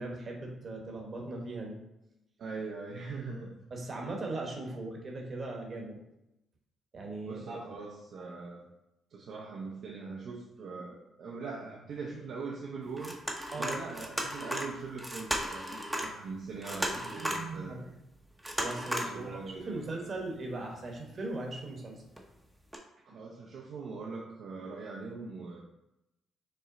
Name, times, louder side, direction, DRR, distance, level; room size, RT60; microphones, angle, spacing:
voice 1, 0.0-1.8 3.7-6.0 6.9-7.7 13.5-13.8 17.2-17.9 18.6-22.0 23.1-23.2, right 2 dB, 45° right, 1 dB, 1.1 m, -39 dB
voice 2, 2.4-3.5 7.3-8.6 9.1-13.1 13.6-17.9 19.0-20.1 23.0-25.6, right 4 dB, 70° right, -2 dB, 0.7 m, -41 dB
sound 1, 12.9-16.1 16.4-17.6 18.4-19.2 19.6-19.7 20.8-21.1 22.2-22.3 22.7-22.8, equal, 5° right, 0.7 m, -35 dB
5.6 x 2.1 x 3.8 m, 0.89 s
cardioid pair, 90°, 0 cm